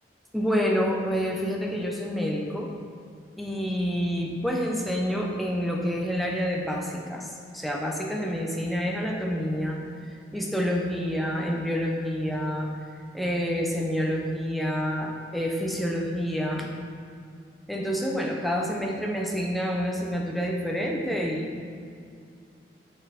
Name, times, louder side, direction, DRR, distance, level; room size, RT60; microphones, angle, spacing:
voice 1, 0.3-2.7 3.4-9.8 10.3-12.7 13.1-16.7 17.7-21.7, equal, ahead, -1 dB, 0.7 m, -28 dB
6.6 x 6.2 x 4.3 m, 2.3 s
head